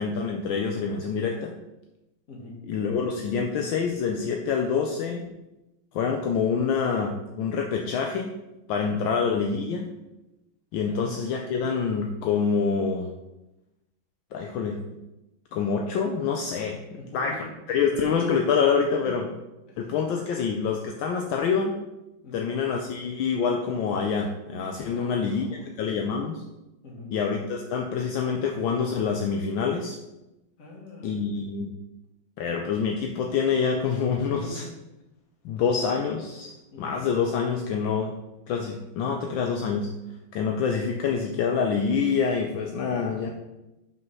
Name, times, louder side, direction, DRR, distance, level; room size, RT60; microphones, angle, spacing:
voice 1, 0.0-1.5 2.7-5.3 5.9-8.3 8.7-9.9 10.7-13.1 14.3-14.8 15.5-19.3 19.8-21.8 22.3-26.4 27.1-30.0 31.0-31.7 32.4-34.7 35.4-38.2 38.5-39.9 40.3-43.3, left 6 dB, 75° left, 2 dB, 1.4 m, -26 dB
voice 2, 2.3-2.6 8.9-9.1 10.8-11.0 16.9-17.5 19.0-19.3 19.7-19.8 22.2-22.5 24.9-25.7 26.8-27.1 30.6-31.4 34.4-34.6 36.7-37.0 42.8-43.3, left 2 dB, 40° left, -1 dB, 2.0 m, -43 dB
5.6 x 5.3 x 6.1 m, 0.98 s
omnidirectional pair, 2.2 m